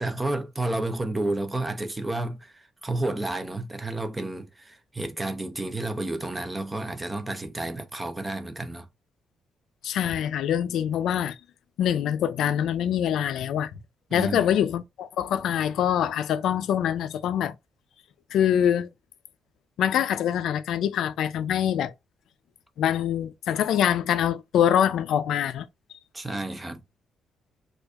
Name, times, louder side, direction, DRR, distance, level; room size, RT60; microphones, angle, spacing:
voice 1, 0.0-8.9 14.1-14.5 26.1-26.8, right 2 dB, 10° right, 0.4 m, -31 dB
voice 2, 9.8-11.4 11.8-13.7 14.1-17.5 18.3-18.9 19.8-21.9 22.8-25.6, left 9 dB, 70° left, 0.4 m, -24 dB
4.5 x 2.4 x 2.3 m
cardioid pair, 170°, 0 cm